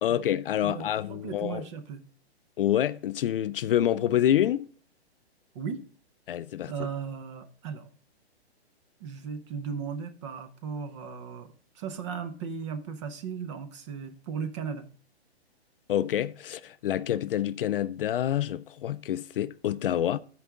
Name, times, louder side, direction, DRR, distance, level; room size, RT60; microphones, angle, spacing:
voice 1, 0.0-1.6 2.6-4.7 6.3-6.9 15.9-20.2, left 11 dB, 55° left, 0.4 m, -27 dB
voice 2, 0.6-2.0 5.5-5.8 6.7-7.9 9.0-14.9, right 6 dB, 30° right, 0.6 m, -36 dB
14.0 x 4.7 x 3.5 m
hypercardioid pair, 150°, 33 cm